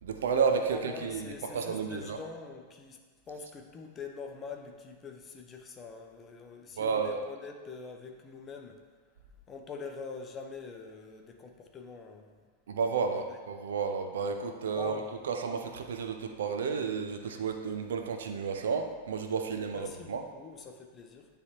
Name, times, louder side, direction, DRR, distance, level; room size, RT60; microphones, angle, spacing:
voice 1, 0.0-2.2 6.8-7.2 12.7-20.2, right 5 dB, 60° right, 5 dB, 0.5 m, -32 dB
voice 2, 0.7-3.0 3.3-8.8 9.5-12.3 13.1-13.4 14.7-15.1 19.7-21.3, left 4 dB, 25° left, 3 dB, 0.7 m, -44 dB
9.5 x 3.4 x 3.0 m, 1.5 s
figure-of-eight pair, 90°, 0 cm